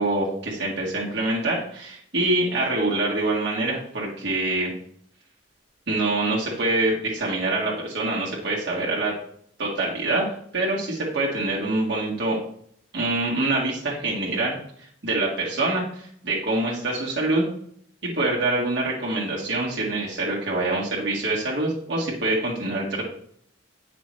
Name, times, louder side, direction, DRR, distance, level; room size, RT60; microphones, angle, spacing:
voice 1, 0.0-4.7 5.9-9.1 9.6-12.4 12.9-14.6 15.0-17.5 18.0-23.0, right 2 dB, 60° right, -4 dB, 1.8 m, -25 dB
8.9 x 6.0 x 3.2 m, 0.64 s
head